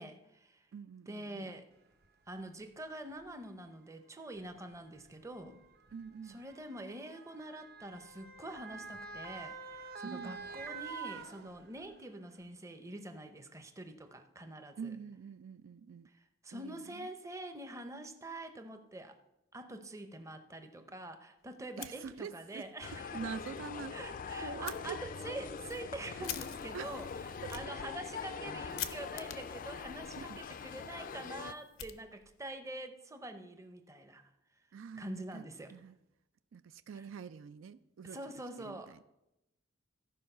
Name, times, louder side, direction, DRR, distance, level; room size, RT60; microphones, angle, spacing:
voice 1, 0.0-0.7 1.1-1.7 2.3-5.6 6.3-14.9 16.1-19.2 19.5-23.2 23.9-34.3 34.9-35.7 36.9-37.0 38.0-39.0, right 1 dB, 15° right, 0.7 m, -46 dB
voice 2, 0.7-1.5 5.9-6.4 10.0-10.4 14.8-16.1 16.5-17.1 21.8-22.7 23.1-24.0 24.4-25.0 26.7-27.0 27.4-27.5 30.2-30.4 34.7-36.0 36.5-38.2 38.6-39.0, right 6 dB, 75° right, 0.4 m, -45 dB
Motor vehicle (road) / Siren, 2.0-2.1 3.1-3.3 4.4-12.0 12.4-12.5, right 5 dB, 55° right, 0.8 m, -47 dB
Fire, 21.6-22.6 22.9-23.0 23.4-23.5 24.6-24.8 25.4-32.5, left 11 dB, 90° left, 0.6 m, -47 dB
sound 1, 22.8-31.5, left 6 dB, 45° left, 0.4 m, -43 dB
14.0 x 4.7 x 5.5 m
head